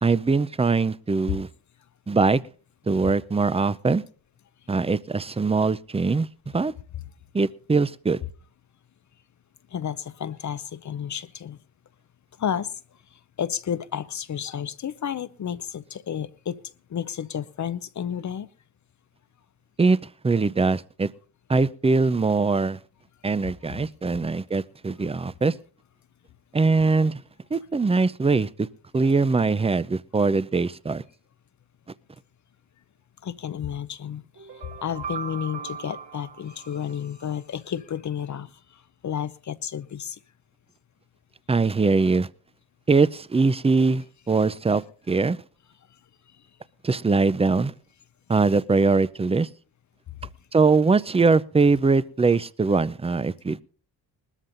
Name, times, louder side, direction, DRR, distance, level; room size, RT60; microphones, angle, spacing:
voice 1, 0.0-1.5 2.1-2.4 2.9-4.0 4.7-6.3 6.5-6.7 7.3-8.2 19.8-20.0 20.2-21.1 21.5-22.8 23.2-25.5 26.5-27.2 27.5-28.7 28.9-31.0 41.5-42.3 42.9-45.4 46.8-47.7 48.3-49.5 50.5-53.6, right 4 dB, 15° right, 0.5 m, -22 dB
voice 2, 9.7-11.6 12.4-12.8 13.1-16.6 16.9-18.5 23.4-23.5 33.2-40.2 46.3-46.4, left 9 dB, 40° left, 0.7 m, -32 dB
sound 1, 34.3-37.4, right 6 dB, 70° right, 2.3 m, -39 dB
20.0 x 13.5 x 2.6 m
supercardioid pair, 55°, 44 cm